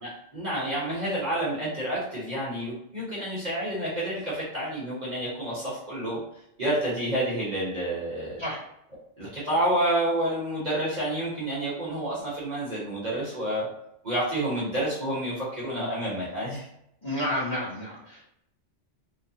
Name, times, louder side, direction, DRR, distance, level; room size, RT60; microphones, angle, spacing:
voice 1, 0.0-6.2 6.6-8.4 9.2-13.7 14.0-16.7, right 1 dB, 40° right, -7 dB, 0.9 m, -29 dB
voice 2, 17.0-18.2, left 1 dB, 25° left, -8 dB, 0.9 m, -30 dB
3.0 x 2.0 x 2.6 m, 0.76 s
omnidirectional pair, 1.2 m